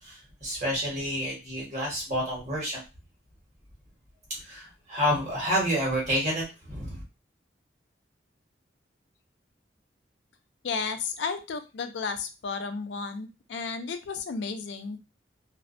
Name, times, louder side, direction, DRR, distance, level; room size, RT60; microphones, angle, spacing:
voice 1, 0.0-2.8 4.3-7.0, equal, 40° right, -4 dB, 1.3 m, -29 dB
voice 2, 10.6-15.0, left 5 dB, 75° left, 7 dB, 0.4 m, -33 dB
2.5 x 2.1 x 2.5 m, 0.28 s
head